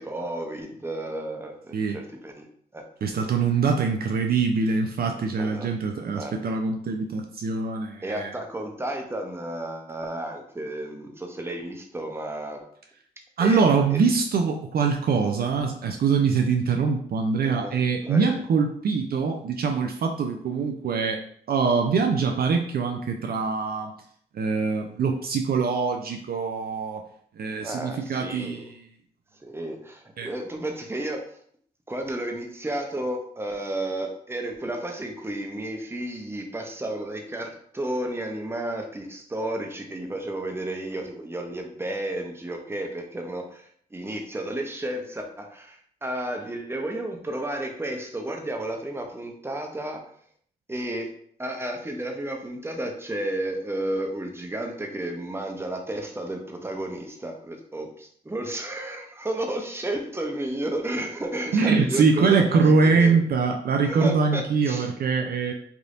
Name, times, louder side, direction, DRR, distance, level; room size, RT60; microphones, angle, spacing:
voice 1, 0.0-2.4 2.7-2.8 5.4-5.7 6.2-6.3 8.0-12.6 13.4-13.6 13.9-14.0 17.4-17.8 18.0-18.4 27.6-28.7 29.4-31.2 31.9-50.0 50.7-51.1 51.4-63.2 63.8-64.9, right 1 dB, 15° right, 3 dB, 0.7 m, -32 dB
voice 2, 3.0-8.3 13.4-21.2 21.5-23.9 24.3-27.0 27.4-28.8 30.2-30.3 61.5-65.5, right 5 dB, 60° right, 3 dB, 0.4 m, -23 dB
3.4 x 2.6 x 2.5 m, 0.62 s
supercardioid pair, 50°, 18 cm